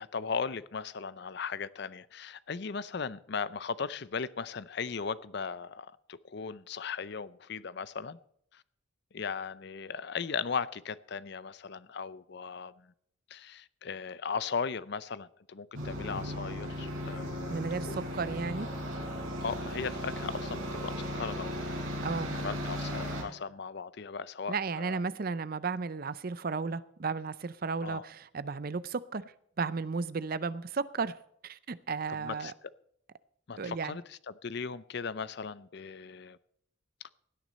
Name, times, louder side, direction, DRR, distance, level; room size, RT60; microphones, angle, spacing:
voice 1, 0.0-8.2 8.5-8.6 9.1-12.9 13.3-17.6 17.8-18.0 19.4-21.6 22.3-25.0 27.8-28.1 32.1-32.5 33.5-36.4, left 5 dB, 55° left, 0.5 m, -37 dB
sound 1, 15.7-23.2, equal, 75° right, 5.1 m, -36 dB
voice 2, 17.5-18.7 22.0-22.4 24.5-31.2 31.4-32.5 33.6-34.0, right 4 dB, 45° right, 0.5 m, -34 dB
17.0 x 9.3 x 4.2 m
head